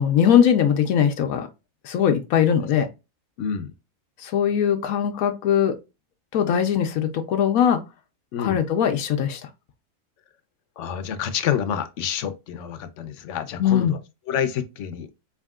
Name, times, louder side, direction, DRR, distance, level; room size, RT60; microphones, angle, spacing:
voice 1, 0.0-1.5 1.8-2.9 4.2-5.7 6.3-7.8 8.4-9.4 13.6-13.9, left 9 dB, 90° left, 1.1 m, -20 dB
voice 2, 3.4-3.7 8.3-8.6 10.8-14.0 14.3-15.1, left 8 dB, 70° left, 0.9 m, -28 dB
4.0 x 3.6 x 2.3 m
omnidirectional pair, 1.4 m